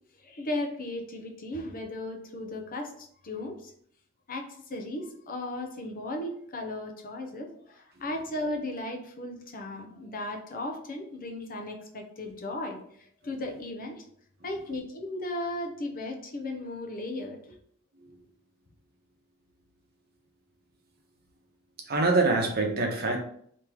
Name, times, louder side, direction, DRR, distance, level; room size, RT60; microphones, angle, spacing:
voice 1, 0.2-3.7 4.3-14.0 14.4-17.5, left 1 dB, 40° left, 2 dB, 0.7 m, -36 dB
voice 2, 21.8-23.2, right 3 dB, 45° right, 2 dB, 0.9 m, -25 dB
3.5 x 2.9 x 4.6 m, 0.64 s
head